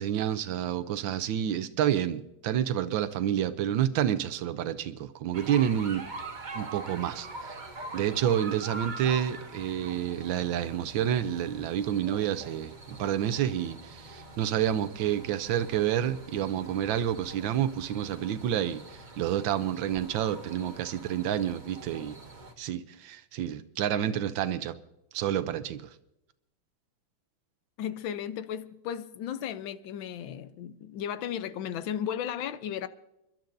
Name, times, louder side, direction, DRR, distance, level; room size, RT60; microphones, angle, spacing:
voice 1, 0.0-6.0 6.5-7.6 7.9-22.2 22.6-24.8 25.1-25.9, right 10 dB, 85° right, 1.5 m, -29 dB
sound 1, 5.3-22.5, right 2 dB, 30° right, 1.1 m, -44 dB
voice 2, 27.8-32.9, left 9 dB, 85° left, 1.5 m, -35 dB
29.5 x 12.0 x 2.6 m
omnidirectional pair, 2.1 m